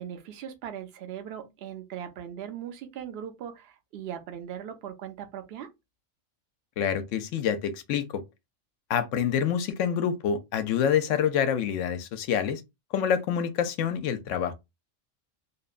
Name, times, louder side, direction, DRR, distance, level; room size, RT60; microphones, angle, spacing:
voice 1, 0.0-5.7, right 9 dB, 60° right, 0.8 m, -39 dB
voice 2, 6.8-8.2 8.9-12.6 12.9-14.5, left 8 dB, 75° left, 0.9 m, -27 dB
2.9 x 2.2 x 2.4 m
omnidirectional pair, 1.3 m